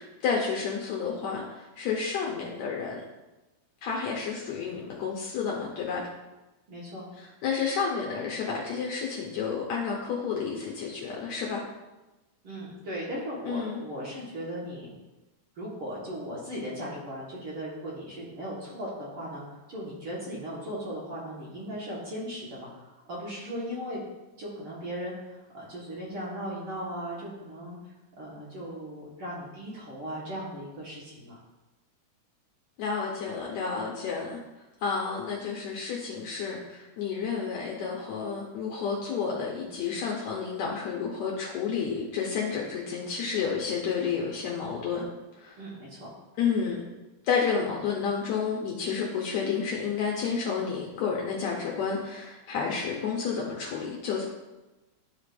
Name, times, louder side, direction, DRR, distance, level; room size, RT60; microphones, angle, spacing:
voice 1, 0.0-3.0 3.8-6.0 7.2-11.6 13.5-13.8 32.8-34.4 34.8-45.1 45.3-45.6 46.4-46.8 47.2-54.3, left 6 dB, 75° left, -2 dB, 2.0 m, -30 dB
voice 2, 6.7-7.1 12.4-15.0 15.6-24.0 24.4-27.8 28.2-31.4 45.6-46.1, equal, 50° right, -6 dB, 2.0 m, -37 dB
12.0 x 5.0 x 2.5 m, 1.1 s
omnidirectional pair, 3.6 m